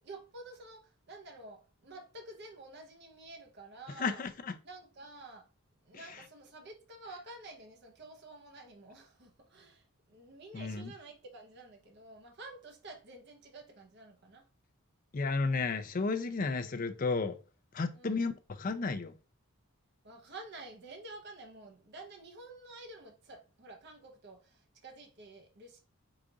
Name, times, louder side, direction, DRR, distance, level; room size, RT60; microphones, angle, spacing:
voice 1, 0.0-4.2 4.6-5.5 5.8-14.5 17.9-18.3 20.0-25.8, right 2 dB, 50° right, 0.7 m, -50 dB
voice 2, 4.0-4.5 10.5-10.9 15.1-17.3 17.7-19.1, left 4 dB, 40° left, 0.4 m, -32 dB
4.9 x 2.4 x 3.9 m
head